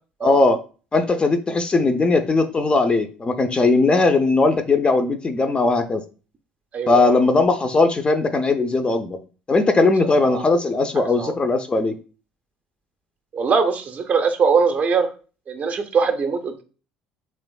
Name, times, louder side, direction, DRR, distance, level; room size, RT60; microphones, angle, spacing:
voice 1, 0.2-0.6 0.9-6.0 6.9-9.2 9.5-12.0, left 3 dB, 25° left, 9 dB, 0.4 m, -19 dB
voice 2, 6.7-7.2 10.2-10.4 11.0-11.3 13.3-15.1 15.5-16.6, right 5 dB, 35° right, 6 dB, 0.5 m, -21 dB
3.4 x 3.0 x 2.2 m, 0.35 s
figure-of-eight pair, 55°, 4 cm